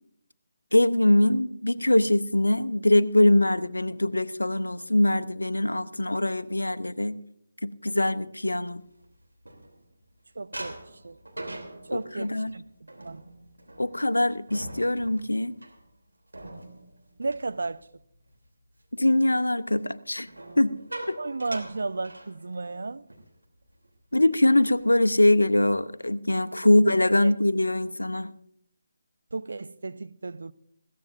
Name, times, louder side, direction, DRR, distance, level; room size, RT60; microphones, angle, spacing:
voice 1, 0.7-7.2 7.6-8.8 11.9-12.5 13.8-15.6 18.9-20.3 20.6-20.8 21.1-21.2 24.1-28.3, left 1 dB, 75° left, 0.7 m, -23 dB
sound 1, 8.7-10.1 10.5-18.4 18.7-19.0 20.2-22.8 23.1-23.3 23.6-23.9 24.4-25.1, right 1 dB, 80° right, 3.1 m, -43 dB
voice 2, 10.3-11.2 11.8-13.2 17.2-17.9 21.2-23.1 26.6-26.8 27.2-27.3 29.3-30.5, right 3 dB, 60° right, 0.6 m, -34 dB
20.5 x 16.5 x 2.6 m
figure-of-eight pair, 150°, 0 cm